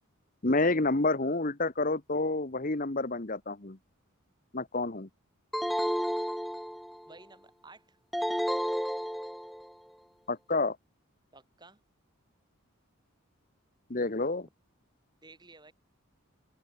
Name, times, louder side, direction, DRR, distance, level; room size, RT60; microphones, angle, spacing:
voice 1, 0.4-3.8 4.5-5.1 10.3-10.8 13.9-14.5, left 2 dB, 40° left, 1.2 m, -29 dB
sound 1, 5.5-7.1 8.1-9.7, equal, ahead, 0.5 m, -31 dB
voice 2, 7.1-8.0 11.3-11.8 15.2-15.7, right 3 dB, 20° right, 5.6 m, -54 dB
head